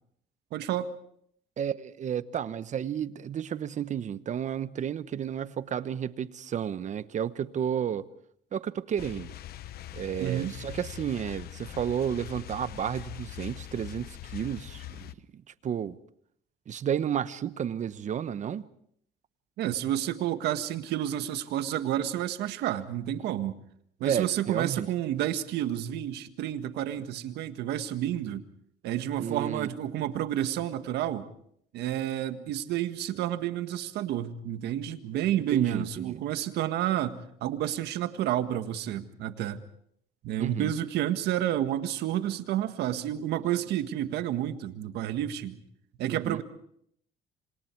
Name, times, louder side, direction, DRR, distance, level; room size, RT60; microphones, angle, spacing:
voice 1, 0.5-0.9 10.2-10.6 19.6-23.5 24.0-28.4 28.8-31.3 31.7-39.6 40.2-45.6 46.0-46.4, right 11 dB, 80° right, 1.8 m, -30 dB
voice 2, 1.6-8.1 8.5-9.3 9.9-16.0 16.7-18.7 24.0-24.9 29.2-29.7 35.5-36.2 40.4-40.7 46.1-46.4, right 8 dB, 45° right, 1.1 m, -32 dB
sound 1, 9.0-15.1, left 13 dB, 65° left, 0.9 m, -42 dB
27.0 x 26.5 x 4.7 m
cardioid pair, 110°, 17 cm